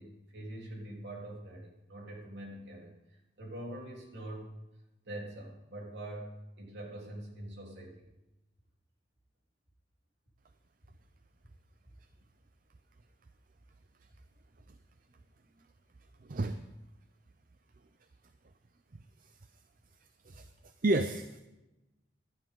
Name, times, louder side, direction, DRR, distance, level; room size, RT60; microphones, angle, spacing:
voice 1, 0.0-4.6 5.1-8.0 20.3-20.4, right 1 dB, 70° right, -2 dB, 3.5 m, -44 dB
voice 2, 16.3-16.6 20.3-20.4 20.8-21.4, right 2 dB, 50° right, 9 dB, 0.6 m, -30 dB
18.5 x 12.0 x 3.8 m, 1.0 s
head